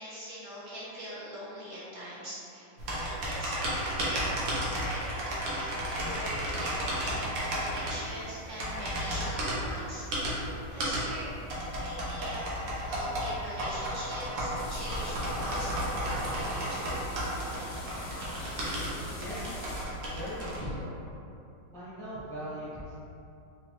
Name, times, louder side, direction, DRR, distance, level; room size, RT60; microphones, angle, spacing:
voice 1, 0.0-4.4 4.8-11.3 11.8-17.0, equal, 50° right, -9 dB, 1.0 m, -42 dB
sound 1, 2.8-20.6, equal, 75° right, 1.4 m, -33 dB
sound 2, 14.5-19.8, left 1 dB, 70° left, 1.2 m, -42 dB
voice 2, 19.2-19.6 20.1-21.0 21.7-22.9, equal, 5° left, -11 dB, 0.5 m, -39 dB
4.2 x 2.5 x 2.9 m, 2.7 s
omnidirectional pair, 2.1 m